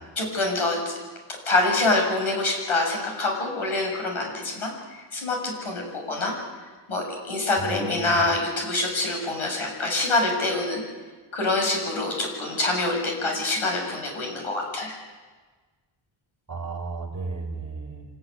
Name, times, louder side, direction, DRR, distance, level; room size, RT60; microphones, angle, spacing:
voice 1, 0.2-0.9 1.5-6.3 6.9-10.8 11.3-15.0, left 2 dB, 90° left, 1 dB, 7.1 m, -25 dB
voice 2, 7.6-8.2 16.5-18.1, right 3 dB, 35° right, -1 dB, 4.6 m, -34 dB
25.5 x 15.5 x 9.8 m, 1.3 s
wide cardioid pair, 170°, 48 cm